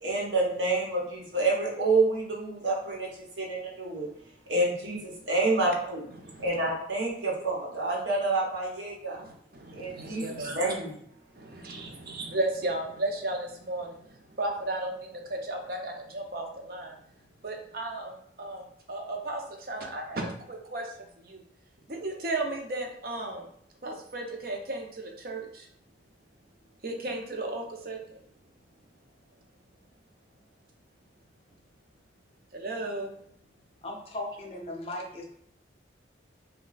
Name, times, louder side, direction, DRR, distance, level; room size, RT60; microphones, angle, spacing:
voice 1, 0.0-3.1 3.4-4.1 4.5-6.0 6.4-9.2 9.7-10.9, right 2 dB, 80° right, -3 dB, 1.1 m, -28 dB
voice 2, 6.2-6.6 9.2-10.6 11.3-16.9 17.4-18.1 18.4-21.4 21.9-23.4 23.8-25.7 26.8-28.2 32.5-33.1, right 2 dB, 50° right, 2 dB, 0.6 m, -35 dB
voice 3, 33.8-35.3, left 1 dB, 30° left, 0 dB, 0.5 m, -37 dB
3.1 x 2.2 x 3.8 m, 0.71 s
head